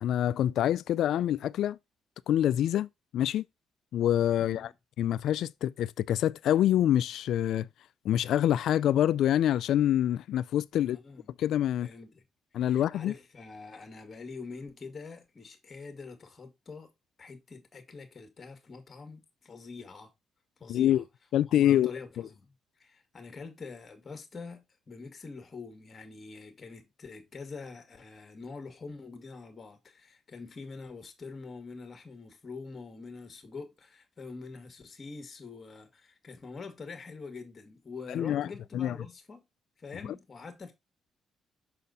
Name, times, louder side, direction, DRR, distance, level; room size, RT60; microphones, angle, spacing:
voice 1, 0.0-1.8 2.3-2.9 3.1-3.4 3.9-4.7 5.0-7.7 8.0-11.0 11.4-11.9 12.5-13.1 20.7-21.0 21.3-21.9 38.1-38.5 38.7-38.9, left 11 dB, 75° left, 0.3 m, -26 dB
voice 2, 4.4-4.7 10.8-11.3 11.8-12.2 12.5-16.9 17.2-20.1 20.6-21.1 21.5-22.5 22.8-39.4 39.8-40.7, left 4 dB, 35° left, 1.9 m, -45 dB
6.4 x 4.1 x 4.0 m
cardioid pair, 90°, 0 cm